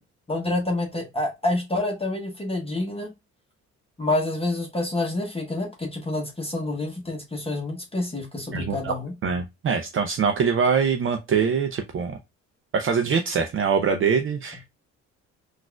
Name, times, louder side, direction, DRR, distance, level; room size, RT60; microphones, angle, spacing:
voice 1, 0.3-3.1 4.0-9.1, left 2 dB, 20° left, 0.9 m, -28 dB
voice 2, 8.5-8.9 9.2-12.2 12.7-14.6, right 6 dB, 45° right, 0.5 m, -23 dB
4.0 x 2.5 x 2.2 m
cardioid pair, 90°, 30 cm